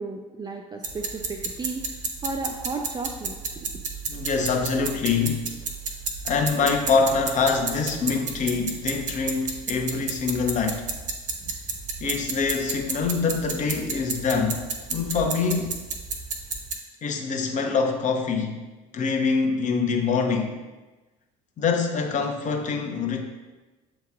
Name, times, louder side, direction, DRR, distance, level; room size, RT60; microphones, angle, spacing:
voice 1, 0.0-1.8 2.2-3.7, right 3 dB, 20° right, 2 dB, 0.4 m, -34 dB
sound 1, 0.8-16.8, right 4 dB, 45° right, 0.8 m, -32 dB
voice 2, 4.1-5.4 6.2-10.9 12.0-14.6 14.9-15.8 17.0-18.6 18.9-20.5 21.6-23.2, left 5 dB, 45° left, 3 dB, 0.8 m, -25 dB
7.1 x 3.0 x 2.4 m, 1.2 s
hypercardioid pair, 65°, 18 cm